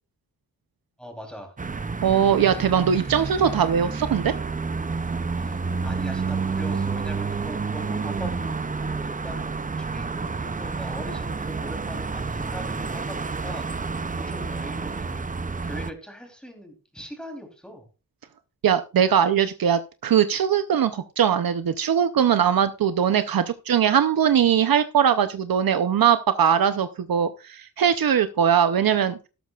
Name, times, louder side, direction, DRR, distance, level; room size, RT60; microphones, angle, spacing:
voice 1, 1.0-1.5 5.4-5.6 5.8-15.2 15.6-17.9, equal, ahead, 3 dB, 3.3 m, -41 dB
sound 1, 1.6-15.9, right 4 dB, 25° right, 0.5 m, -29 dB
voice 2, 2.0-4.3 18.6-29.2, right 8 dB, 80° right, 11 dB, 0.7 m, -21 dB
12.5 x 12.0 x 2.4 m, 0.31 s
wide cardioid pair, 110°, 34 cm